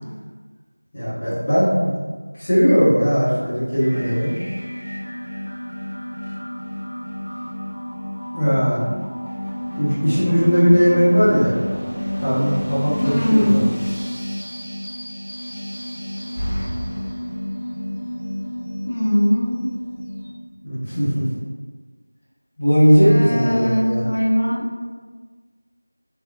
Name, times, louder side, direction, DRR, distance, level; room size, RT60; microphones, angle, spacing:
voice 1, 0.9-1.9 2.3-4.3 8.3-8.8 9.8-11.5 12.2-13.7 20.6-21.3 22.6-24.0, equal, 15° left, -13 dB, 0.8 m, -18 dB
sound 1, 3.8-20.3, equal, 80° left, 0.8 m, -30 dB
voice 2, 13.0-13.7 18.9-19.7 23.0-24.7, equal, 35° left, -3 dB, 0.4 m, -20 dB
sound 2, 16.1-17.8, equal, 20° right, 0.8 m, -31 dB
3.3 x 2.5 x 2.2 m, 1.4 s
figure-of-eight pair, 175°, 0 cm